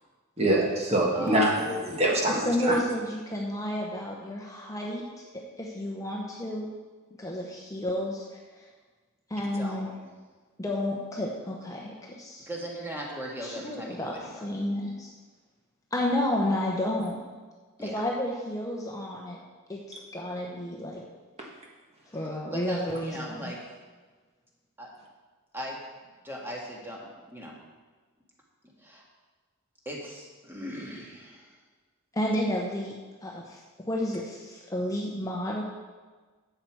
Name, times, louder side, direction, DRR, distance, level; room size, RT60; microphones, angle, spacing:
voice 1, 0.4-2.8, right 1 dB, 30° right, -1 dB, 1.6 m, -24 dB
voice 2, 1.1-1.8 9.5-9.8 12.5-14.5 17.8-18.0 22.5-23.6 24.8-24.9 25.5-25.8 26.2-27.6 28.8-29.0 29.9-31.6, equal, 10° right, -2 dB, 1.9 m, -38 dB
voice 3, 2.3-5.0 5.6-6.7 7.2-8.7 9.3-9.9 10.6-12.5 13.4-15.1 15.9-17.2 17.8-19.4 19.7-21.0 22.1-23.5 32.1-32.9 33.2-35.6, left 1 dB, 15° left, -2 dB, 0.9 m, -31 dB
11.5 x 7.9 x 4.7 m, 1.4 s
head